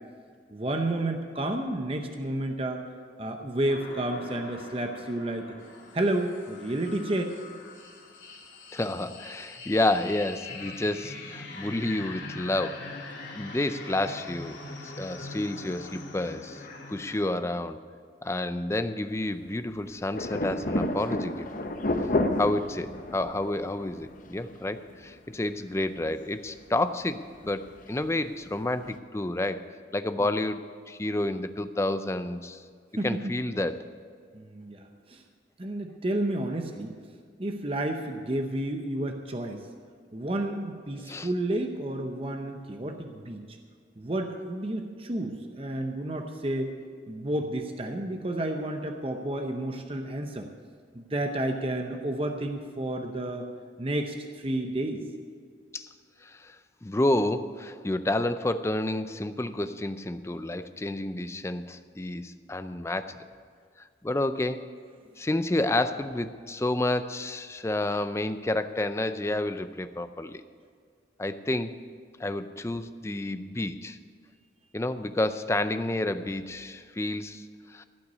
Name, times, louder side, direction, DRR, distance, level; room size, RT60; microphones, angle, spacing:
voice 1, 0.5-2.8 3.2-5.5 5.9-7.4 33.0-33.4 34.3-35.2 35.6-36.9 37.4-39.6 40.1-43.6 44.0-46.7 47.1-50.5 50.9-53.5 53.8-55.0, right 1 dB, 30° right, 4 dB, 0.7 m, -31 dB
sound 1, 3.7-17.2, left 3 dB, 75° left, 2.7 m, -43 dB
voice 2, 8.7-12.9 13.3-16.6 16.9-17.8 18.2-21.5 22.4-32.6 33.0-33.9 41.0-41.3 55.7-55.9 56.2-63.2 63.8-64.7 65.2-70.4 71.2-71.8 72.2-74.0 74.7-77.9, left 1 dB, 15° left, 11 dB, 0.4 m, -30 dB
sound 2, 20.1-25.5 25.8-25.9 26.5-26.6 27.4-28.0 28.3-28.4 29.0-29.1, left 1 dB, 45° left, 0.8 m, -30 dB
16.0 x 5.9 x 9.5 m, 2.1 s
head